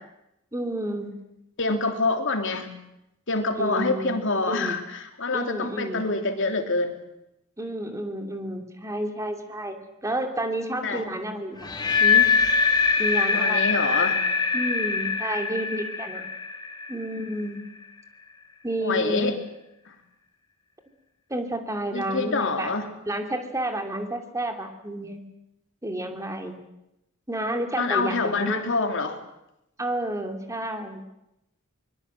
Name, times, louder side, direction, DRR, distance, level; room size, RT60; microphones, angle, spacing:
voice 1, 0.5-1.1 3.6-4.2 4.5-4.8 5.3-6.0 7.6-11.7 12.0-12.3 13.0-13.8 14.5-16.3 16.9-17.6 18.6-19.3 21.3-22.8 23.1-25.2 25.8-26.6 27.3-28.6 29.8-31.0, right 1 dB, 15° right, 5 dB, 2.8 m, -30 dB
voice 2, 1.6-2.7 3.3-6.9 10.8-11.0 13.3-14.2 18.8-19.4 19.9-20.0 21.9-22.9 27.7-29.2, left 3 dB, 60° left, 5 dB, 3.2 m, -26 dB
sound 1, 11.6-17.6, left 5 dB, 20° left, 3.0 m, -23 dB
24.0 x 22.0 x 7.8 m, 0.86 s
head